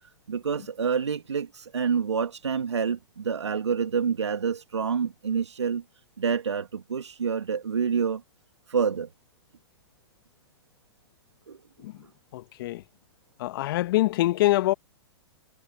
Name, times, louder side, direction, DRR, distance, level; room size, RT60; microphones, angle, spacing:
voice 1, 0.0-5.8 6.2-8.2 8.7-9.1 11.5-11.6, right 6 dB, 90° right, 1.7 m, -27 dB
voice 2, 12.3-12.8 13.4-14.7, left 17 dB, 55° left, 1.0 m, -24 dB
hypercardioid pair, 115°, 14 cm